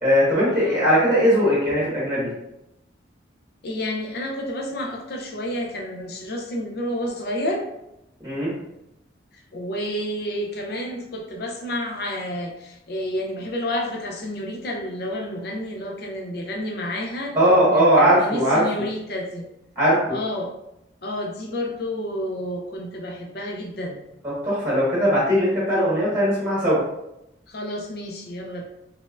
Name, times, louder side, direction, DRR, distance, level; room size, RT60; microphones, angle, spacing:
voice 1, 0.0-2.3 8.2-8.5 17.3-18.6 19.7-20.2 24.2-26.8, equal, 15° right, -7 dB, 1.5 m, -19 dB
voice 2, 3.6-7.7 9.5-17.4 17.7-19.5 20.1-20.5 21.0-24.0 27.5-28.7, left 1 dB, 55° left, 1 dB, 0.6 m, -30 dB
4.3 x 3.4 x 2.5 m, 0.85 s
head